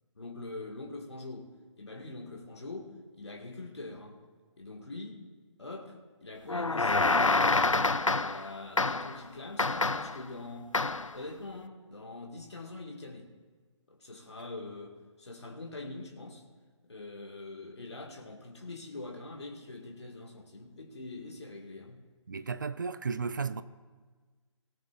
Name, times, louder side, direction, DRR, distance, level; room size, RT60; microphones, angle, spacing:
voice 1, 0.2-4.2 4.6-5.2 5.6-10.8 11.1-13.3 13.9-16.4 16.8-22.1, left 2 dB, 60° left, 1.9 m, -44 dB
sound 1, 6.5-8.5 8.8-9.2 9.6-10.2 10.7-11.1, left 3 dB, 85° left, 0.5 m, -27 dB
voice 2, 22.3-23.6, right 5 dB, 40° right, 0.5 m, -34 dB
19.0 x 13.0 x 2.5 m
figure-of-eight pair, 145°, 16 cm